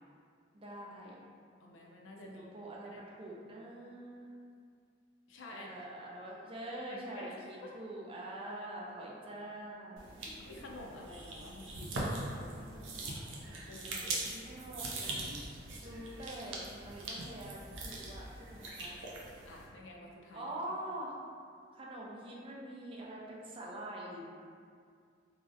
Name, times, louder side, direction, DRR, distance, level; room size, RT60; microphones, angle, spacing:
voice 1, 0.5-1.2 2.3-4.3 5.5-10.1 12.4-13.5 14.2-19.1 20.3-21.2 21.7-24.3, right 1 dB, 30° right, -4 dB, 0.4 m, -45 dB
voice 2, 1.6-2.5 2.9-3.0 5.3-5.7 6.9-7.4 8.5-8.7 10.2-12.6 13.7-14.4 19.5-20.4, left 1 dB, 80° left, -1 dB, 0.4 m, -50 dB
sound 1, 10.0-19.7, right 2 dB, 85° right, 0.5 m, -42 dB
3.1 x 2.4 x 2.5 m, 2.2 s
head